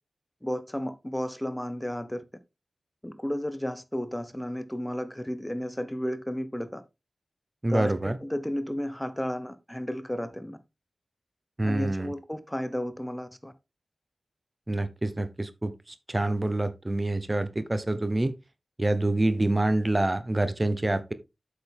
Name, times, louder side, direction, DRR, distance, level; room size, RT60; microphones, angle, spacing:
voice 1, 0.4-2.2 3.0-6.8 7.7-10.6 11.6-13.5, equal, 10° left, 0.8 m, -33 dB
voice 2, 7.6-8.2 11.6-12.1 14.7-18.3 18.8-21.1, right 2 dB, 25° right, 0.9 m, -26 dB
8.2 x 6.9 x 3.5 m
wide cardioid pair, 85°, 0 cm